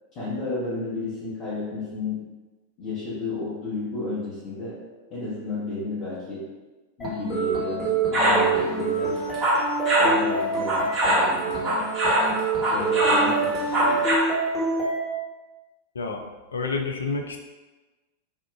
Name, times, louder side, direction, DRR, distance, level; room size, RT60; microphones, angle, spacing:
voice 1, 0.1-2.2 2.8-4.8 5.1-6.4 7.0-9.2 10.0-11.9 12.7-14.1, left 3 dB, 40° left, -11 dB, 1.0 m, -32 dB
sound 1, 7.0-15.0, right 4 dB, 10° left, 1.1 m, -26 dB
sound 2, 8.1-8.5 9.2-10.2 10.7-12.3 12.6-14.2, equal, 35° right, 1.2 m, -22 dB
voice 2, 16.5-17.4, left 4 dB, 70° left, 3 dB, 0.3 m, -28 dB
3.5 x 2.3 x 2.3 m, 1.2 s
figure-of-eight pair, 90°, 0 cm